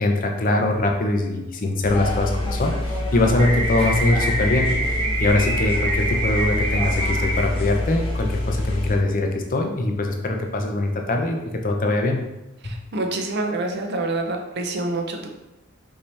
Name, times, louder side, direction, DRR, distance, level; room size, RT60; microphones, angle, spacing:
voice 1, 0.0-11.4 11.6-12.2 12.6-12.7, left 2 dB, 45° left, 3 dB, 0.6 m, -22 dB
sound 1, 1.8-8.9, left 1 dB, 30° left, 1.1 m, -26 dB
sound 2, 3.4-7.4, right 1 dB, 30° right, 1.0 m, -26 dB
voice 2, 12.6-15.3, right 2 dB, 55° right, 2 dB, 0.7 m, -27 dB
5.4 x 2.8 x 3.3 m, 0.96 s
head